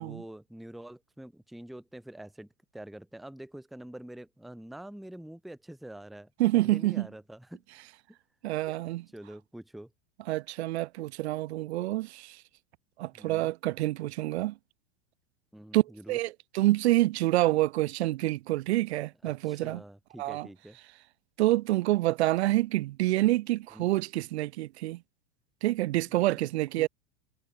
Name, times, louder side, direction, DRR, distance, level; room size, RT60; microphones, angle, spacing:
voice 1, 0.0-7.6 8.7-8.8 9.1-9.9 13.1-13.5 15.5-16.2 19.2-20.8 23.7-23.9 26.8-26.9, right 1 dB, ahead, 0.8 m, -46 dB
voice 2, 6.4-7.1 8.4-9.0 10.3-12.4 13.0-14.6 15.7-19.8 20.2-20.5 21.4-25.0 25.6-26.9, right 17 dB, 70° right, 1.3 m, -27 dB
supercardioid pair, 155°, 34 cm